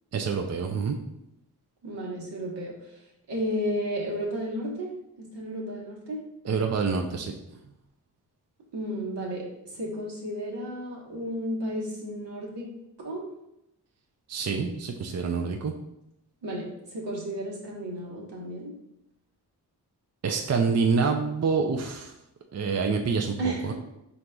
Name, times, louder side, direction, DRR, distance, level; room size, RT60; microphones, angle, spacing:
voice 1, 0.1-1.0 6.4-7.3 14.3-15.7 20.2-22.1 22.5-23.4 23.6-23.7, right 5 dB, 40° right, 4 dB, 0.5 m, -26 dB
voice 2, 1.8-2.7 3.3-4.9 5.2-6.2 8.7-9.4 9.7-12.7 13.0-13.2 16.4-16.6 16.9-18.7 23.4-23.7, equal, 80° right, -3 dB, 1.3 m, -32 dB
4.6 x 4.0 x 2.3 m, 0.85 s
cardioid pair, 55°, 41 cm